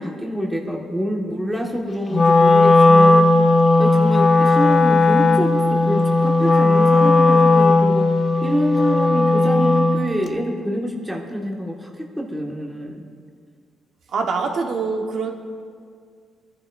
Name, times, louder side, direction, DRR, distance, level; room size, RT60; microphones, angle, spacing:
voice 1, 0.0-3.3 3.8-8.1 8.4-13.1, equal, 5° right, -1 dB, 1.6 m, -26 dB
Wind instrument woodwind instrument, 2.1-10.1, left 2 dB, 35° left, 0.6 m, -15 dB
voice 2, 14.1-15.3, right 4 dB, 65° right, 2 dB, 1.3 m, -24 dB
23.0 x 10.5 x 2.6 m, 2.1 s
cardioid pair, 90°, 0 cm